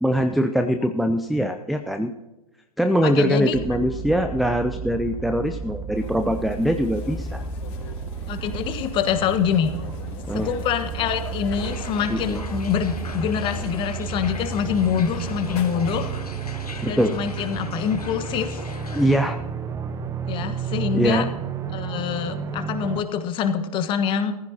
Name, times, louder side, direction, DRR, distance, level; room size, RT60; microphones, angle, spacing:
voice 1, 0.0-2.1 2.8-7.4 10.3-10.5 12.1-12.4 16.8-17.2 18.9-19.4 20.9-21.3, equal, ahead, 7 dB, 0.4 m, -22 dB
voice 2, 3.0-3.5 8.3-9.7 10.3-16.2 16.8-18.6 20.3-21.2 21.7-24.3, left 8 dB, 25° left, 9 dB, 1.3 m, -25 dB
sound 1, 3.5-23.0, right 5 dB, 15° right, 0.9 m, -32 dB
sound 2, 5.9-16.2, left 4 dB, 45° left, 3.9 m, -43 dB
sound 3, 11.5-19.2, left 4 dB, 80° left, 1.6 m, -40 dB
18.5 x 15.0 x 2.9 m, 1.0 s
figure-of-eight pair, 115°, 19 cm